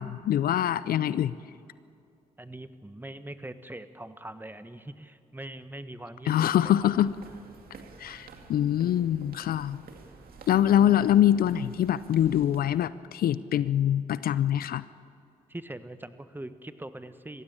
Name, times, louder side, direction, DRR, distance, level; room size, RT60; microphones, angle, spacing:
voice 1, 0.0-1.4 6.3-7.1 8.0-9.8 10.5-14.8, left 11 dB, 65° left, 17 dB, 0.5 m, -24 dB
voice 2, 2.4-6.7 15.5-17.4, right 1 dB, 10° right, 11 dB, 1.3 m, -42 dB
sound 1, 6.3-12.9, right 4 dB, 65° right, 2.3 m, -50 dB
22.0 x 15.5 x 8.7 m, 2.5 s
hypercardioid pair, 45°, 16 cm